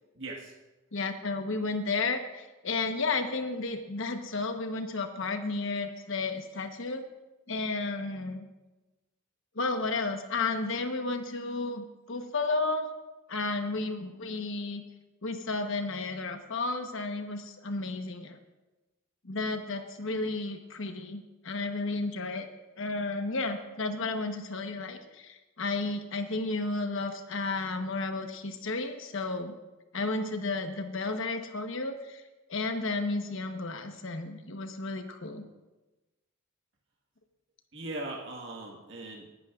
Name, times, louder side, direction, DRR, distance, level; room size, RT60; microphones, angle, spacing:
voice 1, 0.1-0.5 37.7-39.3, right 2 dB, 60° right, -1 dB, 1.7 m, -39 dB
voice 2, 0.9-7.0 7.5-8.4 9.5-12.9 13.3-14.8 15.2-18.4 19.2-22.5 22.8-29.5 29.9-32.2 32.5-35.4, left 3 dB, 65° left, 6 dB, 1.1 m, -32 dB
20.5 x 11.5 x 2.5 m, 1.1 s
head